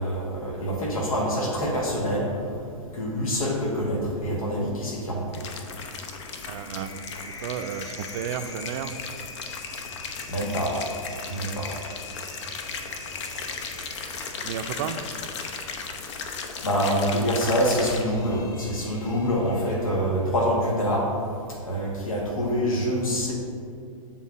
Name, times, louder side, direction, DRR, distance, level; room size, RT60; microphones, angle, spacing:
voice 1, 0.0-2.3 2.9-5.5 10.3-10.7 11.3-11.7 16.6-21.1 21.6-23.3, equal, 80° left, -1 dB, 1.5 m, -26 dB
sound 1, 5.3-18.0, left 5 dB, 55° left, 0.8 m, -37 dB
sound 2, 5.7-20.2, left 3 dB, 20° left, 0.7 m, -44 dB
voice 2, 6.5-7.0 7.3-9.0 13.0-13.1 14.4-15.0 19.9-20.0, right 8 dB, 45° right, 9 dB, 0.5 m, -33 dB
7.3 x 3.7 x 6.1 m, 2.4 s
hypercardioid pair, 115°, 18 cm